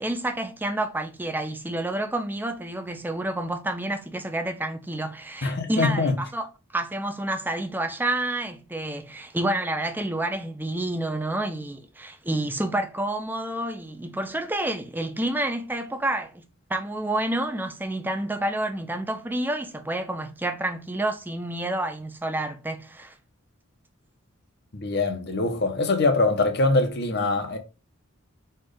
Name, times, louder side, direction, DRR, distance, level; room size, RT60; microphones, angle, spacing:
voice 1, 0.0-6.5 6.7-16.4 16.7-23.1, right 1 dB, 10° right, 0.5 m, -29 dB
voice 2, 5.4-6.1 24.7-27.6, left 3 dB, 50° left, 0.8 m, -23 dB
4.4 x 2.4 x 4.7 m
head